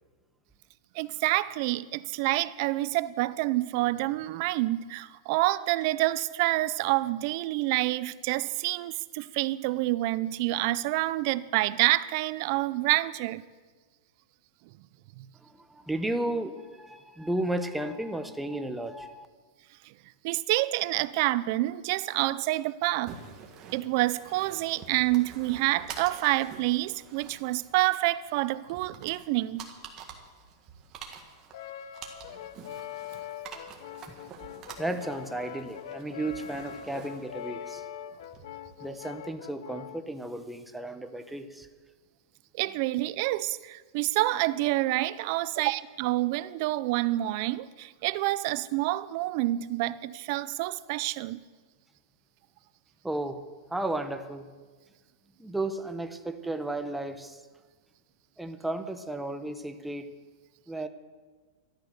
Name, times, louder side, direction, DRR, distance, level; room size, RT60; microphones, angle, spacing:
voice 1, 0.9-13.4 15.2-15.3 20.2-23.1 23.7-29.7 42.5-51.4, right 18 dB, 45° right, 0.5 m, -28 dB
voice 2, 15.4-19.3 34.8-37.9 38.8-41.7 53.0-54.5 55.4-57.4 58.4-60.1 60.7-60.9, right 1 dB, 5° right, 0.8 m, -34 dB
sound 1, 23.1-38.9, right 6 dB, 25° right, 1.7 m, -48 dB
Brass instrument, 31.5-40.1, left 10 dB, 70° left, 0.8 m, -42 dB
13.0 x 12.0 x 6.5 m
supercardioid pair, 155°, 2 cm